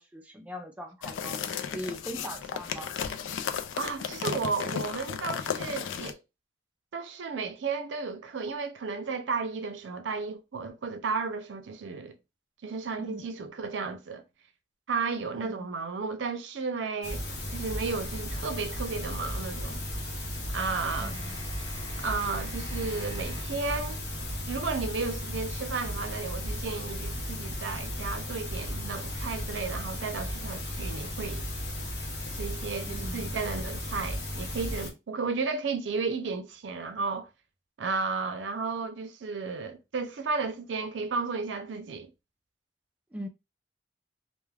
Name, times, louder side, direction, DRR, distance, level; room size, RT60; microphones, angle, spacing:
voice 1, 0.0-3.0 13.0-13.3 15.3-15.7 21.0-21.4 32.9-33.3 43.1-43.3, equal, 5° right, 0.3 m, -41 dB
sound 1, 1.0-6.1, left 7 dB, 90° left, 0.3 m, -34 dB
voice 2, 3.8-6.2 6.9-12.2 12.6-14.2 14.9-17.2 17.5-19.8 20.5-21.1 22.0-24.0 24.5-31.4 32.4-37.3 37.8-42.1, right 4 dB, 75° right, 0.5 m, -33 dB
sound 2, 17.0-34.9, left 1 dB, 60° left, 0.9 m, -35 dB
sound 3, 20.6-23.6, equal, 20° left, 1.0 m, -48 dB
2.2 x 2.2 x 3.2 m
head